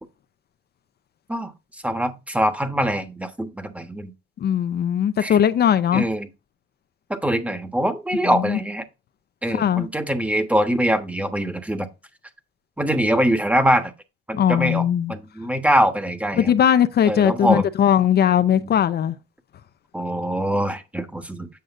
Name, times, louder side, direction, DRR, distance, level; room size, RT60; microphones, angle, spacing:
voice 1, 1.8-4.1 5.2-5.4 5.9-6.3 7.1-8.8 9.4-11.9 12.8-13.9 14.3-16.5 17.0-17.7 18.5-18.8 19.9-21.5, equal, 5° right, 1.2 m, -23 dB
voice 2, 4.4-6.1 8.2-8.6 9.5-9.9 14.3-15.1 16.4-19.2, left 9 dB, 55° left, 0.6 m, -19 dB
7.9 x 6.3 x 2.6 m
cardioid pair, 90°, 20 cm